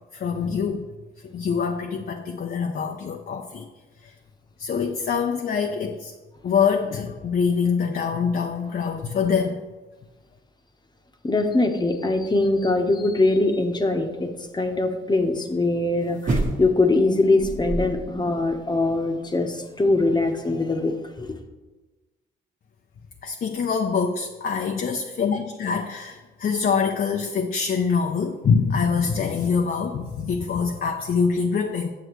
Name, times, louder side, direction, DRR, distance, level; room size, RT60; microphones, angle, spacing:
voice 1, 0.1-0.9 1.2-3.7 4.6-6.1 6.4-9.6 23.2-31.9, left 6 dB, 50° left, 3 dB, 0.6 m, -24 dB
voice 2, 11.2-21.3, left 2 dB, 20° left, 5 dB, 1.0 m, -22 dB
sound 1, 16.2-16.9 17.4-18.2 18.5-18.6, right 2 dB, 40° right, 1.3 m, -26 dB
8.0 x 7.7 x 3.1 m, 1.2 s
cardioid pair, 90°, 20 cm